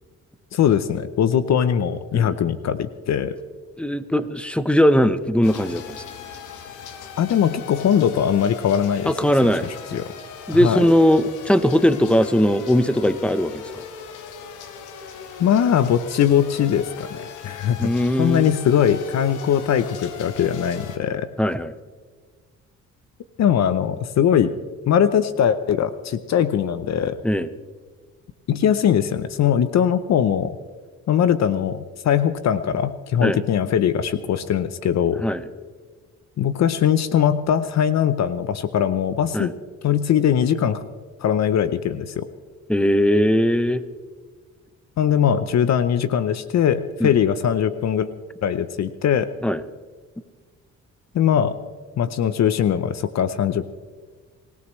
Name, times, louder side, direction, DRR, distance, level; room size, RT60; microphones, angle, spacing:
voice 1, 0.5-3.4 7.2-9.1 9.9-10.0 10.5-10.8 15.4-17.9 18.2-21.3 23.4-24.5 24.9-27.2 28.5-30.6 31.1-35.2 36.4-39.5 39.8-40.8 41.2-42.3 45.0-48.1 48.4-49.3 51.1-51.5 52.0-53.7, left 9 dB, 60° left, 13 dB, 0.8 m, -21 dB
voice 2, 3.8-6.0 9.0-9.6 9.9-10.0 10.5-13.6 17.8-18.5 21.4-21.7 27.2-27.5 33.2-33.4 35.2-35.4 39.3-39.5 42.7-43.8 47.0-47.1 49.4-49.6, equal, 5° left, 12 dB, 0.8 m, -19 dB
sound 1, 5.4-21.0, left 7 dB, 85° left, 1.5 m, -39 dB
24.5 x 16.5 x 3.2 m, 1.5 s
cardioid pair, 90°, 30 cm